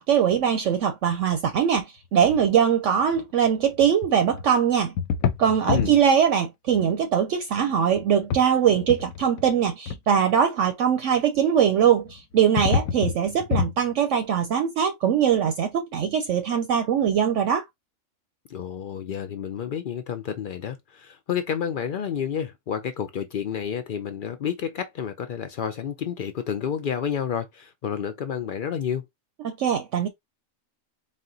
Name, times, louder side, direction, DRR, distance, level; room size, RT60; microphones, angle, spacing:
voice 1, 0.0-4.9 5.4-17.6 29.4-30.1, right 8 dB, 70° right, 0.9 m, -22 dB
sound 1, 2.2-2.4 3.0-3.2 3.7-4.5 5.0-6.0 6.7-6.8 8.0-8.5 8.7-9.4 9.9-10.0 11.8-13.7, left 6 dB, 90° left, 1.0 m, -27 dB
voice 2, 5.7-6.0 18.5-29.0, left 8 dB, 70° left, 0.5 m, -30 dB
4.3 x 2.2 x 3.7 m
omnidirectional pair, 1.4 m